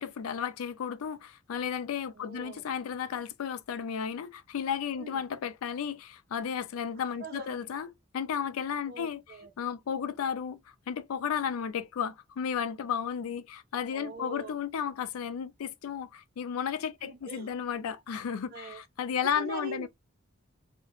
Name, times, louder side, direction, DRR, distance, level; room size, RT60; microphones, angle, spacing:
voice 1, 0.0-9.2 9.6-10.6 10.9-19.9, left 7 dB, 85° left, 0.4 m, -33 dB
voice 2, 2.1-2.6 4.9-5.2 7.2-7.6 8.9-9.5 13.9-14.6 17.0-17.5 18.5-18.8 19.4-19.9, right 4 dB, 45° right, 0.5 m, -43 dB
2.4 x 2.1 x 2.8 m
head